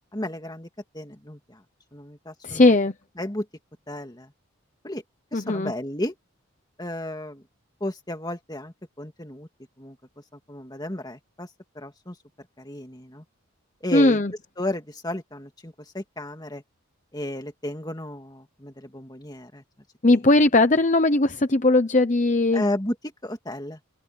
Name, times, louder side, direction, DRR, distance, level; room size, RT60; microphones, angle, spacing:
voice 1, 0.1-0.7 0.9-1.6 1.9-2.8 3.2-3.5 3.9-4.3 4.8-5.0 5.3-6.1 6.8-7.4 7.8-9.5 9.8-10.0 10.3-11.5 11.7-12.2 12.6-13.2 13.8-14.2 14.6-16.6 17.1-19.6 20.1-20.2 22.5-23.0 23.2-23.8, left 1 dB, 20° left, 2.2 m, -33 dB
voice 2, 2.4-2.9 5.3-5.7 13.9-14.3 20.0-22.6, left 2 dB, 35° left, 0.9 m, -19 dB
head